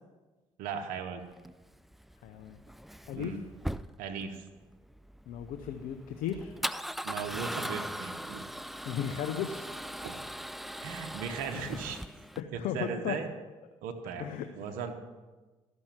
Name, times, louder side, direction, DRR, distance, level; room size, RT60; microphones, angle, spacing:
voice 1, 0.6-1.2 3.2-3.4 4.0-4.5 7.0-8.4 10.0-10.2 10.8-12.0 12.5-13.3 13.8-14.9, right 6 dB, 80° right, 5 dB, 1.0 m, -37 dB
Male speech man speaking / Car / Engine starting, 1.3-12.4, equal, ahead, 0.4 m, -40 dB
voice 2, 2.2-2.6 3.1-3.4 5.3-6.5 8.8-9.7 11.5-11.8 12.4-13.2 14.2-14.5, left 9 dB, 80° left, 6 dB, 0.7 m, -35 dB
13.5 x 6.1 x 7.4 m, 1.2 s
supercardioid pair, 60°, 14 cm